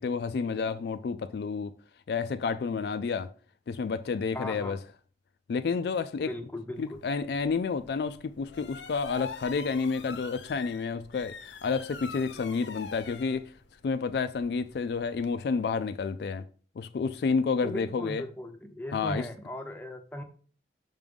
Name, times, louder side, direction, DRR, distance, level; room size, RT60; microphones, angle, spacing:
voice 1, 0.0-1.7 2.1-3.3 3.7-4.8 5.5-6.3 6.8-13.4 13.8-16.5 16.8-18.2 18.9-19.3, left 5 dB, 60° left, 0.3 m, -30 dB
voice 2, 4.3-4.8 6.3-7.0 17.6-20.2, left 1 dB, 10° left, 0.6 m, -37 dB
sound 1, 6.8-15.3, left 5 dB, 80° left, 0.7 m, -46 dB
5.8 x 3.6 x 5.2 m
head